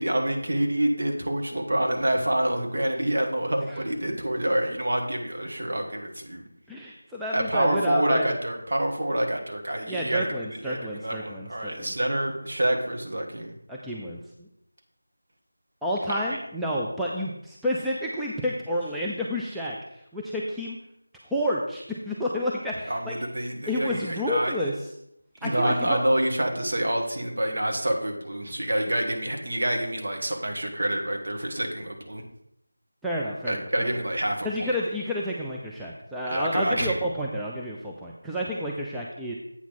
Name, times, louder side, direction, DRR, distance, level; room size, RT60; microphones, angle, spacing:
voice 1, 0.0-6.5 7.3-13.5 16.1-16.4 22.9-24.5 25.4-32.2 33.5-34.7 36.3-37.0, right 1 dB, 55° right, 2 dB, 1.8 m, -27 dB
voice 2, 6.7-8.3 9.9-11.9 13.7-14.2 15.8-19.8 20.1-20.8 21.3-23.1 23.7-24.7 25.4-26.0 33.0-33.9 34.4-39.3, equal, ahead, -6 dB, 0.4 m, -30 dB
8.3 x 5.9 x 4.2 m, 0.77 s
figure-of-eight pair, 170°, 0 cm